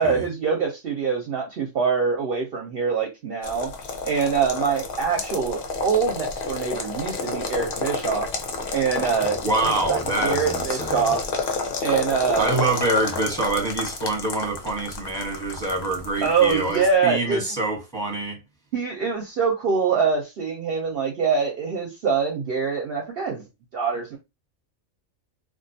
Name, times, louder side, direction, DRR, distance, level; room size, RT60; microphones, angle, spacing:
voice 1, 0.0-3.7 4.0-8.3 8.7-9.4 9.9-11.2 11.8-12.6 16.2-17.5 18.7-23.4 23.7-24.2, right 6 dB, 60° right, 0.6 m, -24 dB
sound 1, 3.4-16.9, left 4 dB, 60° left, 0.6 m, -30 dB
voice 2, 9.4-11.1 12.4-18.4, right 2 dB, 5° left, 0.7 m, -26 dB
2.4 x 2.3 x 2.6 m
omnidirectional pair, 1.3 m